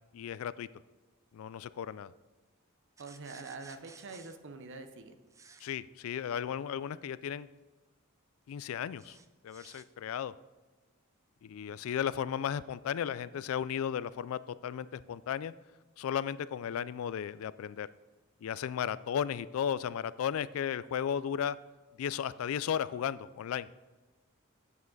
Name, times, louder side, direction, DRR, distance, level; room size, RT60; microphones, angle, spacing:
voice 1, 0.1-0.7 1.3-2.1 5.6-7.5 8.5-9.2 9.4-10.3 11.4-15.5 16.0-17.9 18.4-21.6 22.0-23.7, left 8 dB, 70° left, 18 dB, 0.3 m, -35 dB
sound 1, 3.0-4.4 5.3-5.7 9.0-9.9, right 4 dB, 15° right, 0.4 m, -55 dB
voice 2, 3.0-5.2, right 3 dB, 60° right, 9 dB, 0.8 m, -45 dB
8.6 x 7.2 x 3.9 m, 1.2 s
head